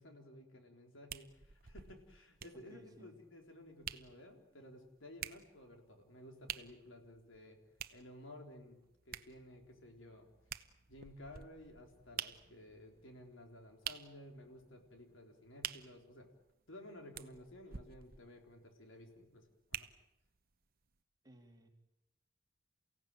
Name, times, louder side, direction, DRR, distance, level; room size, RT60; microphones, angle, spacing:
voice 1, 0.0-7.6 7.9-8.8 9.1-10.3 10.9-16.3 16.7-19.9, left 1 dB, 75° left, 3 dB, 4.0 m, -55 dB
sound 1, 1.1-20.4 20.9-21.0, right 9 dB, 50° right, 0.9 m, -50 dB
voice 2, 2.5-3.1 21.2-21.7, right 1 dB, 20° right, 2 dB, 3.1 m, -59 dB
29.5 x 16.5 x 9.0 m, 0.92 s
head